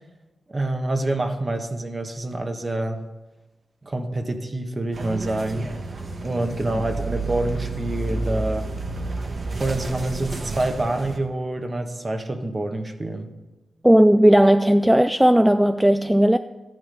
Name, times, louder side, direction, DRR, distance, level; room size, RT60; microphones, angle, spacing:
voice 1, 0.5-3.0 3.8-5.7 6.2-8.7 9.6-13.3, right 2 dB, 35° right, 1.5 m, -27 dB
sound 1, 4.9-11.2, right 2 dB, 50° right, 1.4 m, -30 dB
voice 2, 13.8-16.4, equal, 5° right, 0.4 m, -16 dB
13.5 x 9.7 x 5.4 m
cardioid pair, 70°, 0 cm